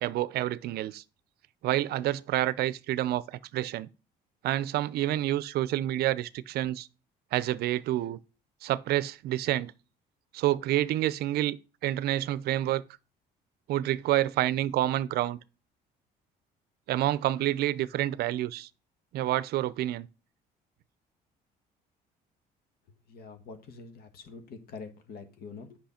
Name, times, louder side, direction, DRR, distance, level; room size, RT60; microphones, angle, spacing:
voice 1, 0.0-1.0 1.6-3.9 4.4-6.9 7.3-8.2 8.6-9.7 10.3-11.6 11.8-12.8 13.7-15.4 16.9-18.7 19.1-20.1, right 14 dB, 70° right, 0.5 m, -28 dB
voice 2, 23.1-25.8, left 4 dB, 65° left, 1.5 m, -45 dB
8.1 x 5.5 x 4.3 m
cardioid pair, 110°, 17 cm